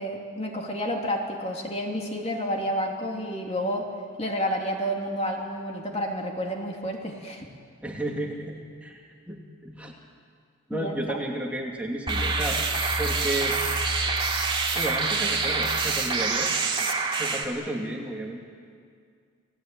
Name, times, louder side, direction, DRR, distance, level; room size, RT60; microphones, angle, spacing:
voice 1, 0.0-3.9 4.2-7.4 10.7-11.2, equal, 30° left, 1 dB, 2.9 m, -30 dB
voice 2, 7.8-9.0 9.3-9.9 10.7-12.6 13.0-13.6 14.7-16.9 17.1-18.4, right 1 dB, 5° right, -1 dB, 2.5 m, -32 dB
sound 1, 12.1-17.4, right 4 dB, 25° right, 2.3 m, -26 dB
30.0 x 18.0 x 9.1 m, 2.1 s
head